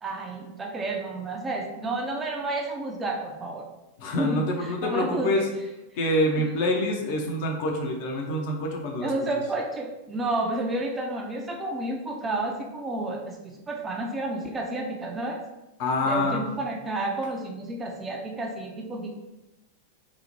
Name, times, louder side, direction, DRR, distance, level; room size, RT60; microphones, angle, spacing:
voice 1, 0.0-3.7 4.2-5.4 9.0-15.4 16.1-19.1, right 2 dB, 15° right, 1 dB, 0.4 m, -31 dB
voice 2, 4.0-5.4 6.0-9.1 15.8-16.5, left 1 dB, 50° left, 1 dB, 0.5 m, -26 dB
2.7 x 2.0 x 3.0 m, 0.99 s
figure-of-eight pair, 90°, 0 cm